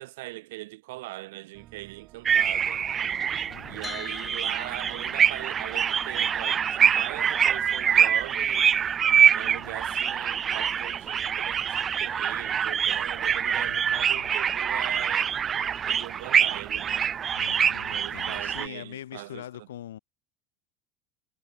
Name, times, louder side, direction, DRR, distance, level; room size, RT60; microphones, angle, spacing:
voice 1, 0.0-2.9 3.7-8.8 9.3-15.3 15.9-17.1 17.7-19.4, right 19 dB, 70° right, 1.8 m, -41 dB
sound 1, 1.5-17.5, right 15 dB, 50° right, 2.6 m, -53 dB
sound 2, 2.3-18.7, right 8 dB, 35° right, 0.4 m, -25 dB
voice 2, 3.5-3.9 9.4-9.8 13.5-14.3 17.4-20.0, left 12 dB, 75° left, 3.4 m, -43 dB
sound 3, 3.8-15.7, left 5 dB, 20° left, 4.8 m, -49 dB
hypercardioid pair, 75°, 0 cm